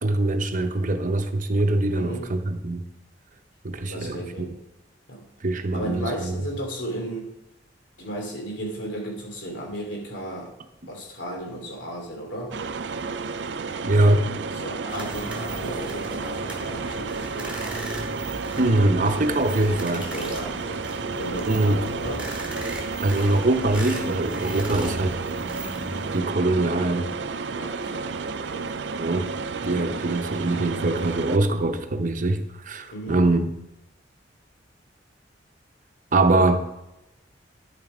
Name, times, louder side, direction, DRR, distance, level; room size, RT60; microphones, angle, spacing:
voice 1, 0.0-2.9 3.6-4.5 5.4-6.4 13.8-14.2 18.6-20.0 21.5-21.8 23.0-25.2 26.1-27.1 29.0-29.3 29.6-33.5 36.1-36.7, right 2 dB, 45° right, 0.8 m, -23 dB
voice 2, 1.9-2.3 3.9-4.6 5.1-5.3 5.7-7.3 8.0-10.5 10.9-12.6 14.5-17.6 19.6-20.8 21.1-22.3 27.5-28.1 28.5-28.7 32.9-33.2, right 1 dB, 85° left, 2.9 m, -35 dB
sound 1, 12.5-31.4, right 4 dB, 70° right, 0.5 m, -32 dB
sound 2, 14.9-26.2, right 1 dB, 5° right, 2.4 m, -37 dB
9.7 x 7.5 x 5.0 m
head